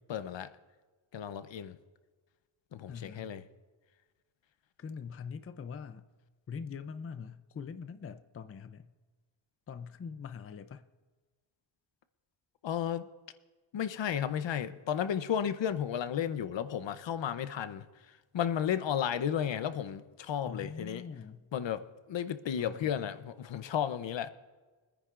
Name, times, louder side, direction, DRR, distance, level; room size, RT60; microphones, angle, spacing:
voice 1, 0.1-0.5 1.1-1.8 2.7-3.4 12.6-13.1 13.7-21.0 21.5-24.3, left 9 dB, 70° left, 0.8 m, -33 dB
voice 2, 2.9-3.3 4.8-6.1 6.5-8.9 9.7-10.8 20.4-21.5 22.6-22.9, left 6 dB, 30° left, 0.5 m, -43 dB
25.0 x 9.9 x 2.5 m
wide cardioid pair, 135°, 47 cm